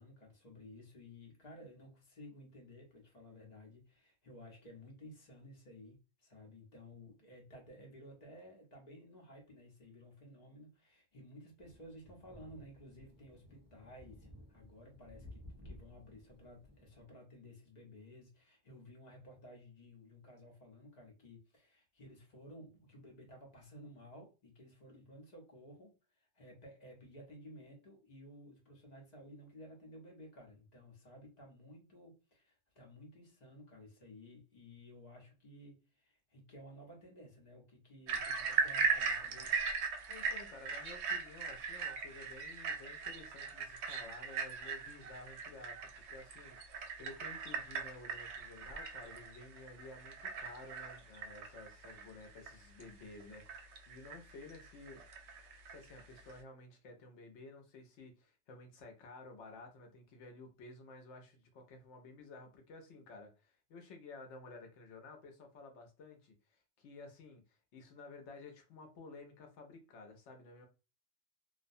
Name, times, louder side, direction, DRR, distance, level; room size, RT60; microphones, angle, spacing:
voice 1, 0.0-39.7, left 1 dB, 40° left, 0.9 m, -55 dB
sound 1, 11.6-17.1, left 1 dB, 15° right, 0.6 m, -56 dB
sound 2, 38.1-56.4, right 5 dB, 70° right, 0.8 m, -39 dB
voice 2, 40.1-53.4 53.9-55.0 55.7-70.7, left 3 dB, 70° left, 1.0 m, -53 dB
2.4 x 2.2 x 2.6 m
omnidirectional pair, 1.3 m